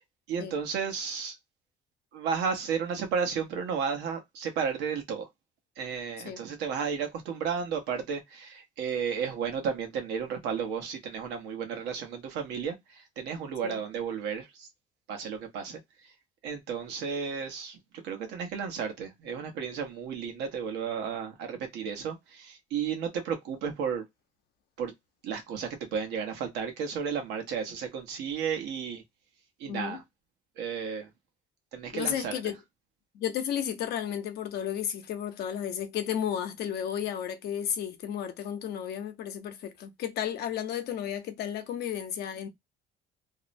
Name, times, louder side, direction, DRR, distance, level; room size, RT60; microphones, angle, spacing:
voice 1, 0.3-1.3 2.1-5.3 5.8-14.7 15.1-15.8 16.4-17.8 18.0-24.0 24.8-24.9 25.2-29.0 29.6-30.0 30.6-31.1 31.7-32.4, right 6 dB, 90° right, 0.9 m, -33 dB
voice 2, 29.7-30.0 31.9-32.6 33.1-42.5, left 9 dB, 70° left, 0.7 m, -33 dB
2.7 x 2.1 x 2.5 m
cardioid pair, 110°, 17 cm